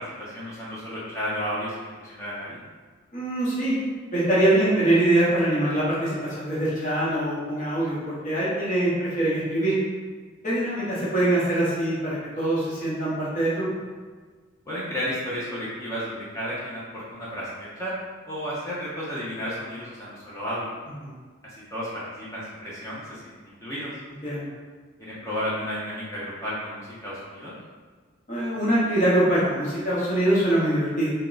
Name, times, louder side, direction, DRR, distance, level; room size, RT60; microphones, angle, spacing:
voice 1, 0.0-2.6 14.7-18.0 18.3-20.7 21.4-23.9 25.0-27.5, equal, 15° left, -8 dB, 0.6 m, -33 dB
voice 2, 3.1-3.7 4.1-9.8 10.4-13.7 21.0-21.2 24.2-24.5 28.3-31.1, right 1 dB, 35° left, -8 dB, 1.1 m, -23 dB
3.5 x 2.2 x 3.9 m, 1.5 s
head